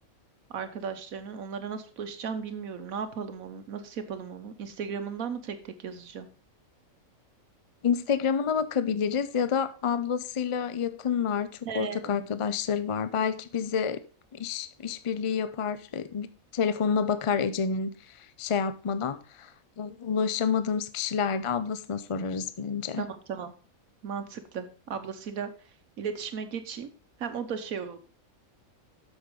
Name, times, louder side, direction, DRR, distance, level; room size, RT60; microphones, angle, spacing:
voice 1, 0.5-6.3 11.7-12.2 23.0-23.5 24.0-25.5 26.0-26.9 27.2-28.0, right 6 dB, 80° right, 1.4 m, -36 dB
voice 2, 7.8-14.0 14.3-16.3 16.5-19.5 19.8-23.0, left 6 dB, 45° left, 0.4 m, -29 dB
7.9 x 6.5 x 5.2 m
omnidirectional pair, 1.5 m